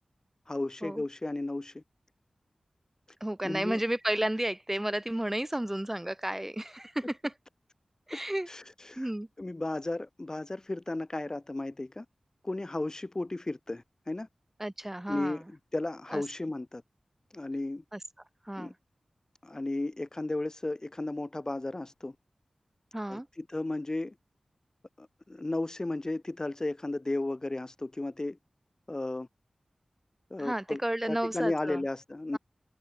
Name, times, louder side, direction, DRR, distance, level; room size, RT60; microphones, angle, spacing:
voice 1, 0.5-1.8 3.4-3.8 8.5-9.1 9.4-12.1 12.4-14.3 15.1-16.8 17.3-17.8 18.6-18.7 19.4-22.1 23.1-24.1 25.0-28.4 28.9-29.3 30.3-30.8 31.1-32.4, left 2 dB, 30° left, 0.4 m, -34 dB
voice 2, 3.2-7.3 8.1-8.5 9.0-9.3 14.6-15.4 16.1-16.2 17.9-18.0 18.5-18.7 22.9-23.3 30.4-31.8, right 1 dB, 15° right, 0.7 m, -32 dB
cardioid pair, 45°, 2 cm